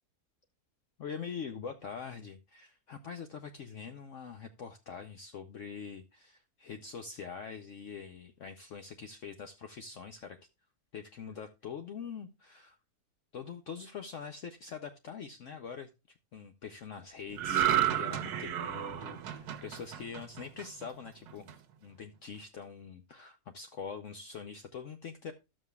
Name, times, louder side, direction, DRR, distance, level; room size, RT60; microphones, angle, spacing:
voice 1, 1.0-10.4 10.9-12.8 13.3-25.3, left 6 dB, 60° left, 7 dB, 1.0 m, -44 dB
sound 1, 17.4-20.8 21.3-21.5, right 11 dB, 80° right, 1.4 m, -31 dB
12.5 x 7.6 x 2.3 m, 0.26 s
omnidirectional pair, 1.7 m